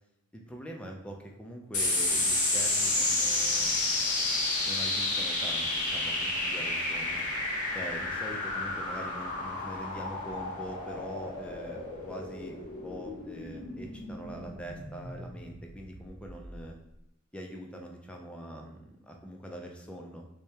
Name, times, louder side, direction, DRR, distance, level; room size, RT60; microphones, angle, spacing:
voice 1, 0.3-4.0 4.6-7.3 7.7-16.8 17.3-20.2, equal, 5° left, 1 dB, 0.4 m, -43 dB
sound 1, 1.7-16.5, left 2 dB, 35° left, 0.8 m, -31 dB
4.8 x 2.2 x 2.8 m, 0.89 s
head